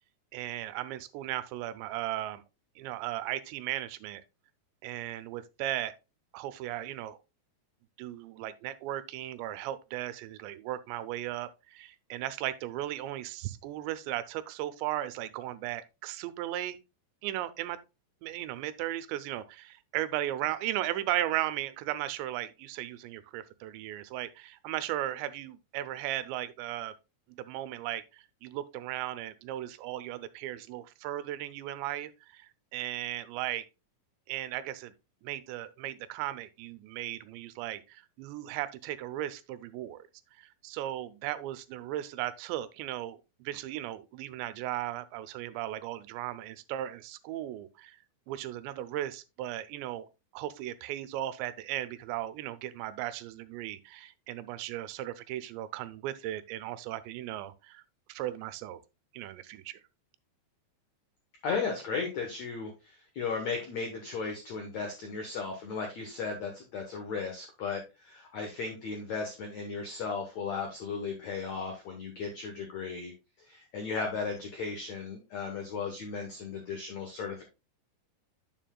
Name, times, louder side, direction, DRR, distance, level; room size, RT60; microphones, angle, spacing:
voice 1, 0.3-2.4 2.8-4.2 4.8-5.9 6.3-7.2 8.0-16.8 17.2-17.8 18.2-26.9 27.3-33.7 34.3-34.9 35.2-40.0 40.4-48.0 48.3-50.1 50.3-57.8 58.1-58.8 59.1-59.8, right 13 dB, 90° right, 2.9 m, -36 dB
voice 2, 61.4-73.1 73.4-77.4, left 5 dB, 85° left, 1.5 m, -36 dB
9.1 x 7.1 x 2.3 m
omnidirectional pair, 5.0 m